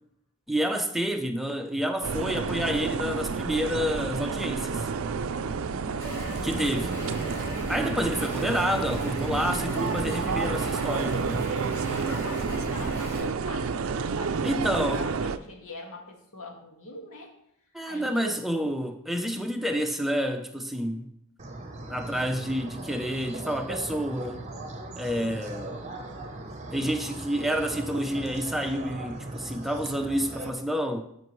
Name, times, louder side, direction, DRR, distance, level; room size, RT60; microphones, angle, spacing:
voice 1, 0.5-4.9 6.4-7.0 7.7-11.5 14.4-15.0 17.7-21.1 21.9-24.5 25.0-25.8 26.7-31.0, equal, ahead, 0.6 m, -29 dB
sound 1, 2.0-15.4, right 5 dB, 65° right, 0.4 m, -30 dB
sound 2, 6.0-13.2, equal, 20° left, 2.9 m, -38 dB
voice 2, 12.1-17.3 17.8-18.4, left 2 dB, 75° left, 1.8 m, -43 dB
sound 3, 21.4-30.5, right 2 dB, 30° right, 0.8 m, -39 dB
13.0 x 5.2 x 3.2 m
head